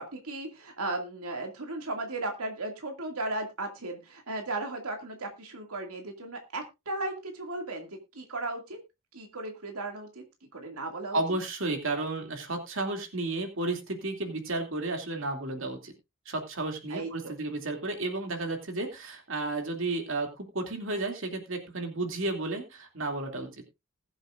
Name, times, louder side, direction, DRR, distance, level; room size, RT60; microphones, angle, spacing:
voice 1, 0.0-8.8 9.1-10.2 10.5-11.2 16.9-17.3 23.4-23.5, right 2 dB, 85° right, 3 dB, 2.3 m, -36 dB
voice 2, 11.1-15.9 16.3-23.5, right 2 dB, 60° right, 4 dB, 2.6 m, -32 dB
20.5 x 7.9 x 2.5 m, 0.25 s
head